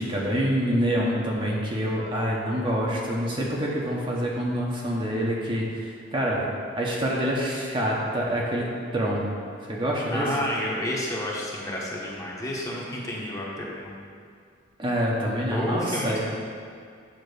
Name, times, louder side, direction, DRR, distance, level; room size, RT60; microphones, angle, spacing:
voice 1, 0.0-6.4 6.8-8.7 8.9-9.2 9.7-10.3 14.8-16.2, equal, 25° right, -4 dB, 0.9 m, -26 dB
voice 2, 10.1-14.0 15.5-16.2, left 1 dB, 15° left, -4 dB, 1.1 m, -30 dB
8.8 x 2.9 x 6.3 m, 2.2 s
head